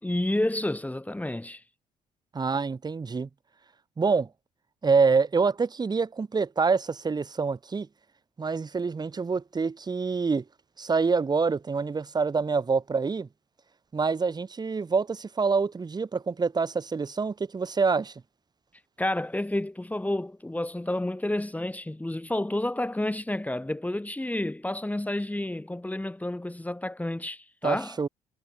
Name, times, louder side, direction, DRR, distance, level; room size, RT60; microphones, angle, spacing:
voice 1, 0.0-1.6 19.0-28.0, left 1 dB, 10° left, 2.5 m, -30 dB
voice 2, 2.3-3.3 4.0-4.3 4.8-7.9 8.4-10.4 10.8-13.3 13.9-18.1 27.6-28.1, right 4 dB, 25° right, 1.1 m, -26 dB
figure-of-eight pair, 50°, 17 cm